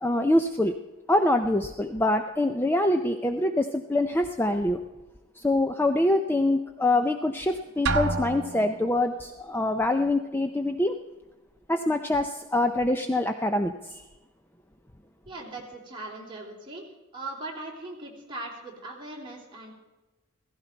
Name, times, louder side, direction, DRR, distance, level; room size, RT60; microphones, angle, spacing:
voice 1, 0.0-0.7 1.1-4.8 5.4-11.0 11.7-14.0, left 1 dB, 10° left, 6 dB, 0.5 m, -25 dB
Drum, 7.9-9.1, right 3 dB, 55° right, 1.0 m, -28 dB
voice 2, 15.3-16.8 17.1-19.7, right 2 dB, 20° right, -3 dB, 3.4 m, -39 dB
16.5 x 15.5 x 4.5 m, 1.1 s
head